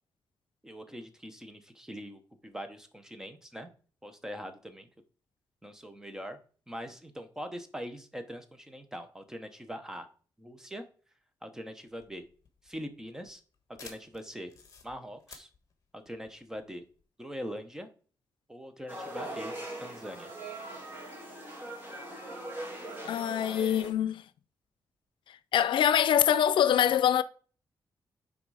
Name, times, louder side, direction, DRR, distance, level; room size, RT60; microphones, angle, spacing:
voice 1, 0.6-3.7 4.0-4.9 5.6-6.4 6.7-10.1 10.4-10.8 11.4-12.2 12.6-13.4 13.8-14.5 14.8-15.5 16.1-16.8 17.2-17.9 18.5-19.5 19.8-20.3, equal, 5° right, 0.8 m, -42 dB
sound 1, 11.9-17.0, left 5 dB, 40° left, 1.3 m, -54 dB
sound 2, 18.9-23.9, right 1 dB, 25° right, 2.0 m, -41 dB
voice 2, 23.0-24.2 25.3-27.2, left 9 dB, 85° left, 0.4 m, -24 dB
9.4 x 3.7 x 4.8 m
wide cardioid pair, 180°, 8 cm